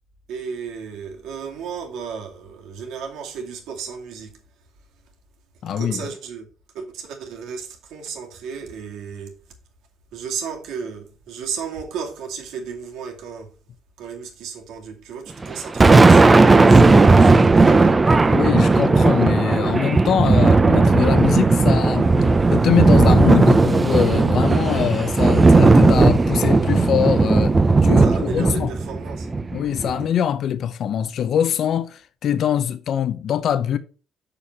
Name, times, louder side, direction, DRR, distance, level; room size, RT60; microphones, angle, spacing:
voice 1, 0.3-4.4 5.8-6.5 6.7-9.3 10.1-13.5 14.0-16.2 16.7-18.0 28.0-29.3, right 6 dB, 80° right, 2.2 m, -34 dB
voice 2, 5.6-6.0 18.3-22.1 22.5-27.6 27.8-28.7 29.5-33.8, left 9 dB, 60° left, 0.7 m, -23 dB
Thunder, 15.4-30.0, right 3 dB, 20° right, 0.6 m, -15 dB
6.8 x 5.5 x 5.5 m
cardioid pair, 105°, 0 cm